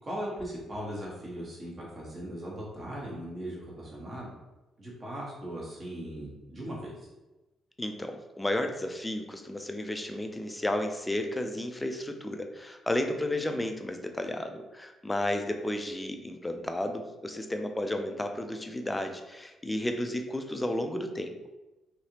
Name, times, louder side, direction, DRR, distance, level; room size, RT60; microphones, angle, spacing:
voice 1, 0.0-4.3 4.8-7.1, equal, 35° right, -4 dB, 1.3 m, -38 dB
voice 2, 7.8-21.4, left 1 dB, 10° left, 6 dB, 0.4 m, -32 dB
3.1 x 2.8 x 2.8 m, 1.0 s
cardioid pair, 90°, 0 cm